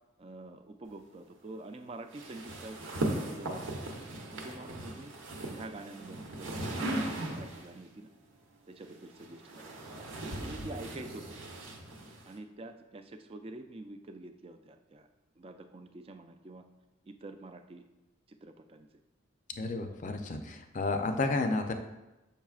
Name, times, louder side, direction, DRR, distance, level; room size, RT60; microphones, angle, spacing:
voice 1, 0.2-3.8 4.3-5.1 5.5-8.1 8.7-9.7 10.3-11.4 12.3-15.1 15.4-16.6 17.0-17.8 18.3-18.9, right 2 dB, 30° right, 7 dB, 0.3 m, -47 dB
sound 1, 2.1-7.8 8.8-12.4, right 1 dB, 80° right, 0.9 m, -38 dB
voice 2, 19.6-21.7, left 3 dB, 40° left, 6 dB, 0.4 m, -31 dB
7.1 x 5.5 x 2.4 m, 1.0 s
head